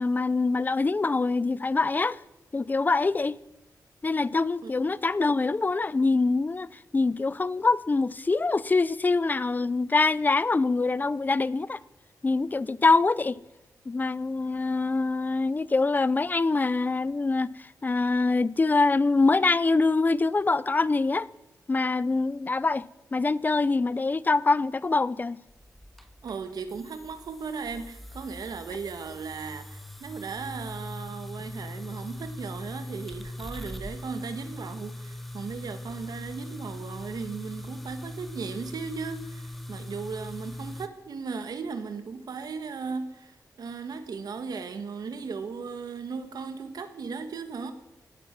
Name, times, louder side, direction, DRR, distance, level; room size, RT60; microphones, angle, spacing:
voice 1, 0.0-2.2 2.5-3.4 4.0-6.7 6.9-11.8 12.2-13.4 13.9-21.3 21.7-22.9 23.1-25.4, left 3 dB, 25° left, 0.5 m, -24 dB
sound 1, 25.5-40.9, left 1 dB, ahead, 1.0 m, -41 dB
voice 2, 26.2-47.7, right 5 dB, 75° right, 1.5 m, -37 dB
17.5 x 12.5 x 6.0 m
wide cardioid pair, 115°, 7 cm